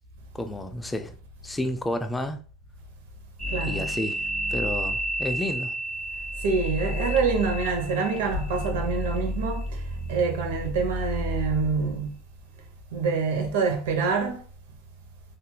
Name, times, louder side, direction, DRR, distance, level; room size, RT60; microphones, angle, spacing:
voice 1, 0.3-1.2 1.4-2.4 3.6-4.2 4.5-5.7, left 1 dB, 10° left, 0.4 m, -30 dB
sound 1, 3.4-12.0, equal, 10° right, 0.7 m, -31 dB
voice 2, 3.5-3.9 6.4-9.6 10.1-12.1 12.9-14.4, right 5 dB, 75° right, 0.7 m, -26 dB
2.8 x 2.4 x 2.2 m
hypercardioid pair, 100°, 0 cm